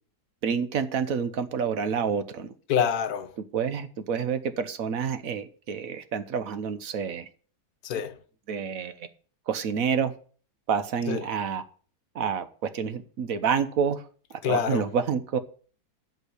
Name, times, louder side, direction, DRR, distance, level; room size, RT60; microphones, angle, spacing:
voice 1, 0.4-2.5 3.5-7.3 8.5-9.1 9.5-10.1 10.7-11.6 12.1-14.0 14.5-15.4, right 6 dB, 60° right, 1.3 m, -28 dB
voice 2, 2.7-3.4 7.8-8.2 11.1-11.3 14.4-14.9, left 8 dB, 70° left, 1.3 m, -27 dB
11.0 x 4.6 x 8.1 m
omnidirectional pair, 1.7 m